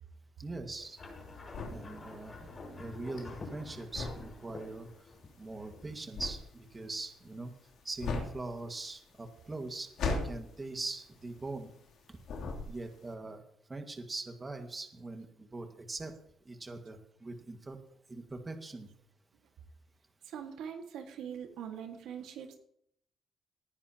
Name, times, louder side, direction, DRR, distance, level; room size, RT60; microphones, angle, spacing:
voice 1, 0.4-1.0 1.6-4.9 5.4-7.5 7.8-9.9 10.2-11.7 12.7-13.4 13.7-16.2 16.5-17.8 18.1-18.9, right 2 dB, 25° right, 5 dB, 1.9 m, -42 dB
sound 1, 0.8-12.0 12.2-13.1, left 3 dB, 75° left, 3.2 m, -39 dB
sound 2, 1.0-6.2, left 3 dB, 40° left, 5.8 m, -48 dB
voice 2, 20.3-22.6, right 8 dB, 85° right, 4 dB, 1.9 m, -42 dB
19.0 x 10.5 x 3.0 m, 0.69 s
cardioid pair, 90°, 0 cm